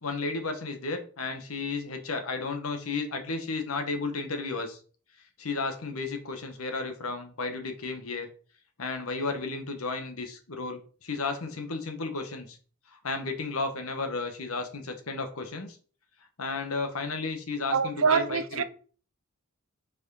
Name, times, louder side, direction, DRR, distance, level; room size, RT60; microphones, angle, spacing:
voice 1, 0.0-4.8 5.4-8.3 8.8-12.6 12.9-15.8 16.4-18.6, left 3 dB, 75° left, 1.3 m, -33 dB
voice 2, 17.7-18.6, right 5 dB, 65° right, 0.6 m, -25 dB
4.9 x 4.9 x 4.8 m
head